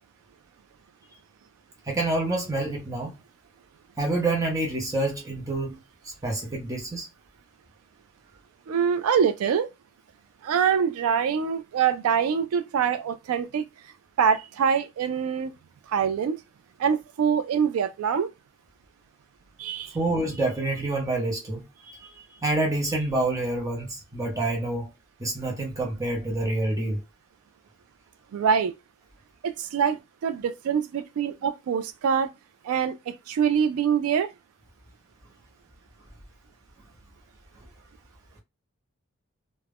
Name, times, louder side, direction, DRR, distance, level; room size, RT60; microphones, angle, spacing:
voice 1, 1.9-3.2 4.0-5.8 6.2-7.1 19.9-24.9 25.2-27.0, right 2 dB, 15° right, 0.7 m, -27 dB
voice 2, 8.7-9.7 10.4-13.6 14.2-15.5 15.9-16.4 16.8-18.3 19.6-20.0 28.3-28.7 29.4-32.3 32.6-33.0 33.3-34.3, right 7 dB, 80° right, 0.3 m, -24 dB
2.3 x 2.0 x 3.4 m
head